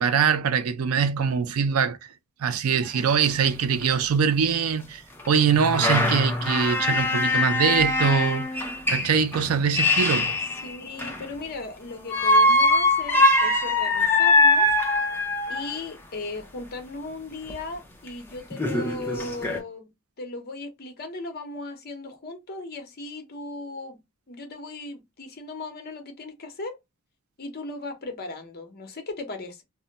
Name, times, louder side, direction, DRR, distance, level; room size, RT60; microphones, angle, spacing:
voice 1, 0.0-2.0 2.4-8.6 8.9-10.4, right 6 dB, 90° right, 0.4 m, -23 dB
sound 1, 2.8-2.9 3.1-3.2 3.8-3.9 5.2-11.4 12.1-15.8 17.5-17.6 18.1-18.2 18.5-19.6, left 2 dB, 10° left, 0.5 m, -22 dB
voice 2, 10.6-14.7 15.5-19.9 20.2-24.0 24.3-26.8 27.4-29.6, left 3 dB, 45° left, 0.7 m, -37 dB
2.2 x 2.1 x 3.8 m
head